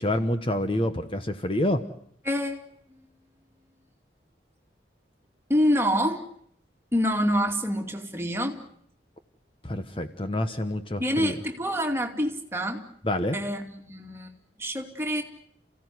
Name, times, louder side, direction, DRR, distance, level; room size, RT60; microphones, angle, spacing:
voice 1, 0.0-1.8 9.6-11.3 13.0-13.4, left 1 dB, 30° left, 8 dB, 1.2 m, -27 dB
voice 2, 2.2-2.6 5.5-6.2 6.9-8.6 11.0-12.8 13.3-14.3 14.6-15.2, equal, 15° right, 3 dB, 2.6 m, -26 dB
29.0 x 16.5 x 9.6 m, 0.68 s
head